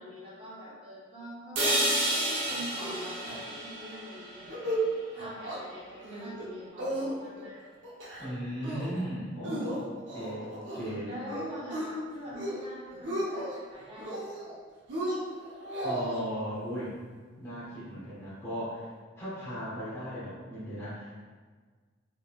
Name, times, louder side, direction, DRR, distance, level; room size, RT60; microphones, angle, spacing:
voice 1, 0.0-1.7 2.1-4.8 5.1-7.7 11.1-14.6, equal, 30° right, -8 dB, 1.0 m, -44 dB
sound 1, 1.6-5.6, right 1 dB, 90° right, 1.0 m, -31 dB
sound 2, 2.4-3.0 3.2-3.3 3.7-4.0 4.4-4.8 5.1-5.6 6.0-6.4 6.8-7.4 7.8-8.3 8.6-9.0 9.4-10.9 11.3-11.9 12.3-12.7 12.9-13.6 14.0-14.5 14.9-16.2, right 1 dB, 65° right, 0.9 m, -35 dB
voice 2, 8.2-11.1 15.8-17.0 17.4-21.2, equal, 15° left, -11 dB, 0.8 m, -37 dB
3.6 x 3.0 x 2.4 m, 1.5 s
head